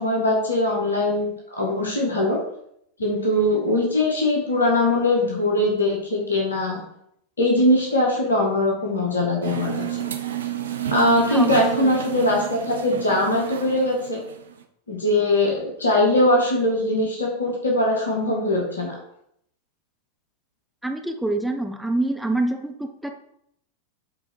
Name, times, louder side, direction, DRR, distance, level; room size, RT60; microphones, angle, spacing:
voice 1, 0.0-2.4 3.0-6.8 7.4-10.0 10.9-14.2 14.9-19.0, left 1 dB, 75° left, -1 dB, 1.8 m, -21 dB
sound 1, 9.4-14.6, right 10 dB, 65° right, 0.8 m, -30 dB
voice 2, 11.3-11.9 20.8-23.1, right 2 dB, ahead, 4 dB, 0.8 m, -26 dB
8.5 x 3.9 x 4.7 m, 0.74 s
figure-of-eight pair, 90°, 0 cm